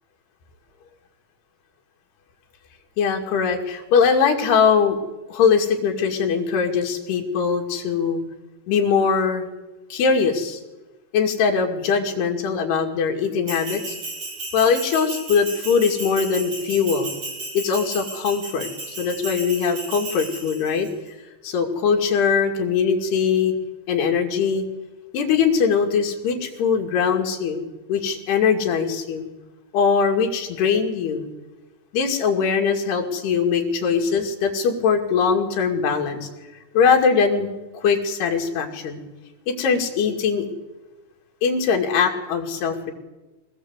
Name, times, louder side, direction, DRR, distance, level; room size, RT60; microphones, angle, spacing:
voice 1, 3.0-5.0 5.3-8.2 8.7-9.5 9.9-10.6 11.1-14.0 14.5-17.1 17.5-18.7 19.0-20.9 21.4-23.5 23.9-24.6 25.1-29.3 29.7-31.2 31.9-36.3 36.7-37.5 37.7-39.0 39.5-40.4 41.4-42.9, left 6 dB, 85° left, 2 dB, 4.4 m, -21 dB
Bell, 13.5-20.9, right 2 dB, 50° right, 7.9 m, -34 dB
23.5 x 19.0 x 8.1 m, 1.1 s
omnidirectional pair, 4.6 m